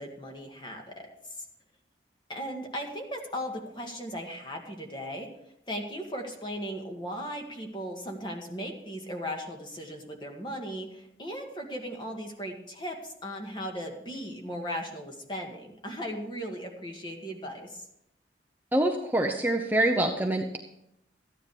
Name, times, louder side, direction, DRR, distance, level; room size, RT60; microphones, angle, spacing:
voice 1, 0.0-1.5 2.3-5.3 5.7-17.9, equal, 25° left, 2 dB, 1.9 m, -37 dB
voice 2, 18.7-20.6, right 1 dB, 10° right, 2 dB, 0.8 m, -25 dB
14.0 x 9.8 x 4.9 m, 0.78 s
head